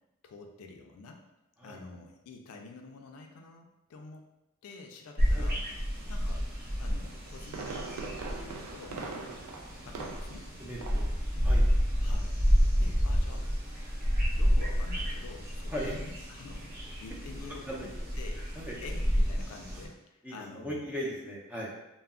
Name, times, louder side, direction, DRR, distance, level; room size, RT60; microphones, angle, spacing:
voice 1, 0.2-1.2 1.6-4.3 4.6-5.6 6.1-6.5 6.8-9.2 9.9-10.5 12.0-12.4 12.8-13.9 14.3-18.4 18.8-21.0, left 4 dB, 70° left, 3 dB, 0.4 m, -48 dB
sound 1, 5.2-19.9, equal, 45° right, 0.7 m, -30 dB
Fireworks, 7.0-10.5 10.8-11.2 11.5-11.6, right 4 dB, 75° right, 0.3 m, -41 dB
voice 2, 10.6-11.0 11.4-11.6 12.8-13.2 15.7-15.9 17.7-17.9 18.6-18.7 20.2-21.7, equal, 5° right, -4 dB, 0.4 m, -38 dB
2.2 x 2.0 x 3.5 m, 0.94 s
head